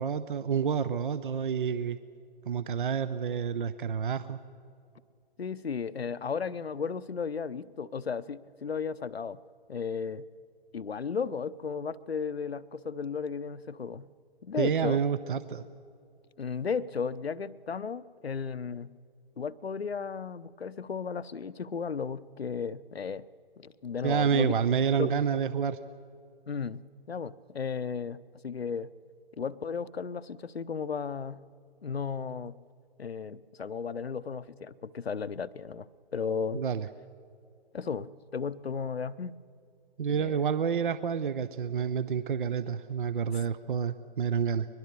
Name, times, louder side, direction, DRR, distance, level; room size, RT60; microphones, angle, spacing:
voice 1, 0.0-2.0 2.5-4.4 14.6-15.6 24.0-25.8 36.5-36.9 40.0-44.7, right 7 dB, 55° right, 15 dB, 0.8 m, -29 dB
voice 2, 5.4-9.4 9.7-10.3 10.7-14.1 14.4-15.0 16.4-18.9 19.4-23.3 23.6-24.5 25.0-25.2 26.5-28.9 29.4-31.4 31.8-32.5 33.0-36.6 37.7-39.3 40.1-40.4, left 6 dB, 75° left, 16 dB, 0.8 m, -34 dB
22.5 x 21.5 x 6.8 m, 2.4 s
figure-of-eight pair, 130°, 31 cm